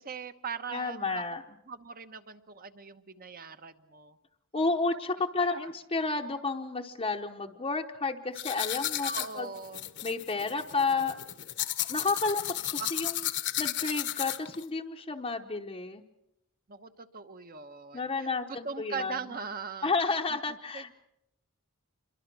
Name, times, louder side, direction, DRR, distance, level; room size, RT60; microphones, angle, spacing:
voice 1, 0.0-1.2 1.7-4.2 5.4-5.7 9.0-9.9 12.8-12.9 16.7-20.2 20.7-20.9, right 5 dB, 40° right, 9 dB, 1.1 m, -40 dB
voice 2, 0.7-1.4 4.5-9.5 10.0-11.2 11.9-13.3 13.6-16.0 17.9-19.2 19.8-20.9, left 3 dB, 25° left, 1 dB, 0.9 m, -31 dB
sound 1, 8.4-14.6, left 13 dB, 55° left, 1.1 m, -34 dB
27.5 x 23.0 x 6.1 m, 0.85 s
head